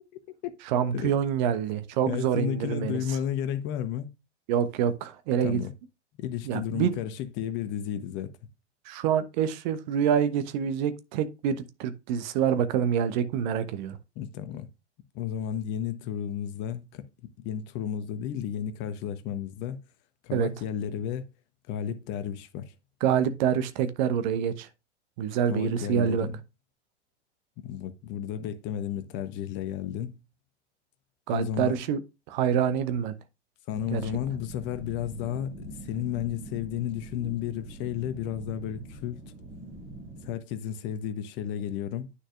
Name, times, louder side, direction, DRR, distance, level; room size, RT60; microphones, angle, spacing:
voice 1, 0.7-3.2 4.5-5.6 6.4-6.9 8.8-14.0 20.3-20.5 23.0-24.7 25.2-26.3 31.3-32.0 32.3-33.1 33.9-34.0, right 8 dB, 40° right, 1.0 m, -26 dB
voice 2, 2.1-4.1 5.4-5.7 6.2-8.3 14.2-14.7 15.1-17.0 17.4-19.8 20.2-21.3 21.7-22.7 25.5-26.4 27.6-30.2 31.3-31.8 33.7-39.3 40.2-42.1, left 10 dB, 30° left, 0.9 m, -33 dB
sound 1, 33.7-40.3, right 1 dB, 15° right, 2.3 m, -43 dB
9.4 x 6.3 x 2.4 m
figure-of-eight pair, 95°, 35 cm